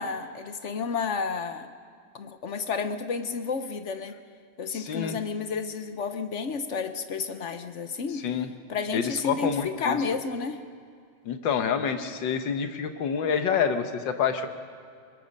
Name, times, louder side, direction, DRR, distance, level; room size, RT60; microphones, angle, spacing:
voice 1, 0.0-1.7 2.1-4.2 4.6-8.3 8.7-10.6, left 5 dB, 50° left, 9 dB, 0.9 m, -31 dB
voice 2, 4.7-5.2 8.2-8.5 8.9-10.0 11.3-14.5, left 7 dB, 75° left, 8 dB, 1.8 m, -27 dB
24.0 x 21.5 x 5.3 m, 2.3 s
omnidirectional pair, 2.0 m